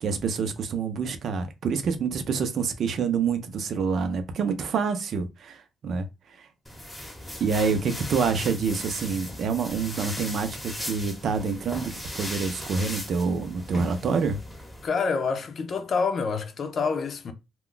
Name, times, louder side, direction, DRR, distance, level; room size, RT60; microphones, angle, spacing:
voice 1, 0.0-6.1 6.4-6.5 7.4-14.4, right 5 dB, 60° right, 0.6 m, -27 dB
sound 1, 6.6-14.9, left 1 dB, 5° left, 0.9 m, -37 dB
voice 2, 14.8-17.3, left 5 dB, 50° left, 0.6 m, -27 dB
2.3 x 2.2 x 3.8 m
cardioid pair, 90°, 0 cm